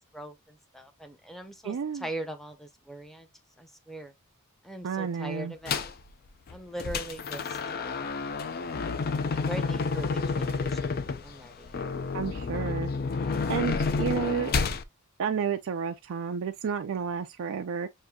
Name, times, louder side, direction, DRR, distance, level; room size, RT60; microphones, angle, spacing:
voice 1, 0.1-3.3 3.6-4.1 4.6-5.9 6.5-8.1 9.3-11.8 13.2-13.5, right 1 dB, ahead, 0.7 m, -41 dB
voice 2, 1.6-2.1 4.8-5.5 12.1-12.9 13.5-14.5 15.2-17.9, right 6 dB, 65° right, 0.4 m, -31 dB
sound 1, 5.7-6.0 6.5-14.8, left 4 dB, 45° left, 0.4 m, -30 dB
6.5 x 2.6 x 2.2 m
head